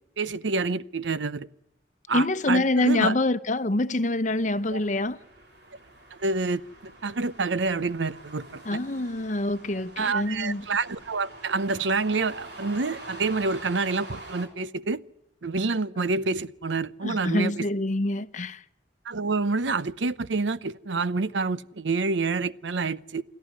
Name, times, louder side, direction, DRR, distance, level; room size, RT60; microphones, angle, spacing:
voice 1, 0.2-1.5 2.1-3.2 4.7-4.8 6.1-8.8 10.0-15.0 15.4-17.7 19.0-23.2, right 3 dB, 80° right, 0.8 m, -28 dB
voice 2, 2.1-5.2 8.7-10.6 17.0-18.6, left 2 dB, 40° left, 0.9 m, -25 dB
sound 1, 4.3-14.5, right 1 dB, 65° right, 4.3 m, -46 dB
29.0 x 13.0 x 9.6 m
head